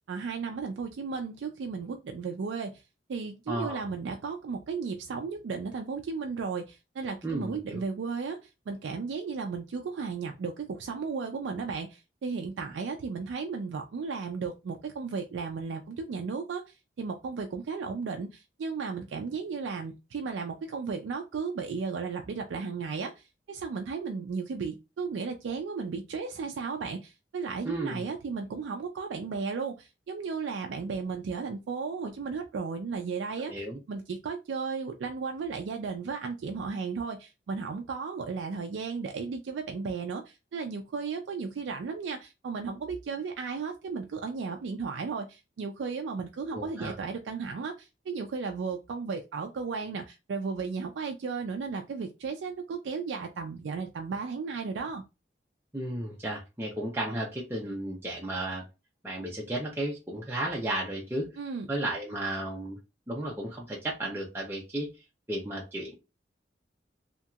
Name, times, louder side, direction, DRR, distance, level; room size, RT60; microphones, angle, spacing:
voice 1, 0.1-2.8 3.1-8.4 8.7-33.5 33.9-55.0 61.4-61.7, right 5 dB, 85° right, 0.3 m, -35 dB
voice 2, 3.5-3.8 7.2-7.8 27.6-28.0 33.5-33.8 46.5-46.9 55.7-58.6 59.0-61.3 61.7-62.8 63.1-64.9 65.3-65.9, right 1 dB, 15° right, 0.5 m, -33 dB
2.8 x 2.7 x 2.3 m
head